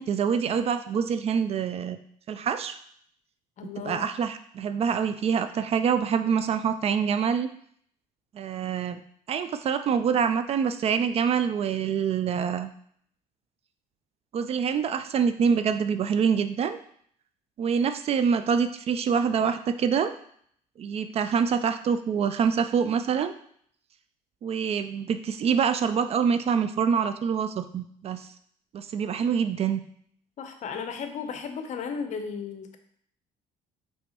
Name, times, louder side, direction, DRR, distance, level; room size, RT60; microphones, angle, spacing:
voice 1, 0.0-2.0 2.3-2.8 3.6-7.5 8.3-9.0 9.3-12.7 14.3-16.8 17.6-20.1 20.8-23.3 24.4-28.3 28.7-29.8, right 7 dB, 45° right, 11 dB, 0.4 m, -25 dB
voice 2, 3.6-4.1 30.4-32.8, left 6 dB, 55° left, 7 dB, 0.7 m, -35 dB
5.2 x 3.4 x 2.9 m, 0.64 s
cardioid pair, 100°, 15 cm